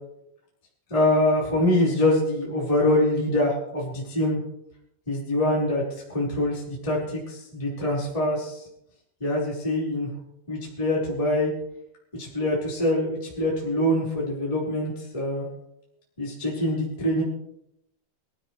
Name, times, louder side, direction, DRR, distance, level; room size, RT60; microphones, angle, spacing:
voice 1, 0.9-4.4 5.1-8.7 9.2-10.1 10.5-11.5 12.1-15.5 16.2-17.2, left 1 dB, 5° left, -6 dB, 4.6 m, -24 dB
25.5 x 13.5 x 3.4 m, 0.77 s
omnidirectional pair, 5.7 m